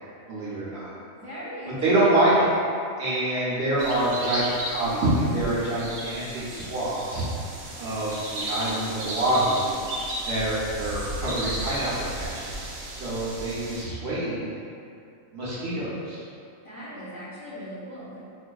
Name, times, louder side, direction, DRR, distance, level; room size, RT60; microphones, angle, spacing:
voice 1, 0.3-0.9 1.8-2.5 3.0-7.3 7.8-9.8 10.3-14.5 15.3-16.2, right 1 dB, 60° right, -8 dB, 0.8 m, -26 dB
voice 2, 1.1-2.2 16.6-18.2, equal, 35° left, -12 dB, 0.7 m, -39 dB
sound 1, 3.8-13.8, right 1 dB, 80° right, 1.1 m, -34 dB
5.0 x 2.5 x 2.2 m, 2.5 s
omnidirectional pair, 1.4 m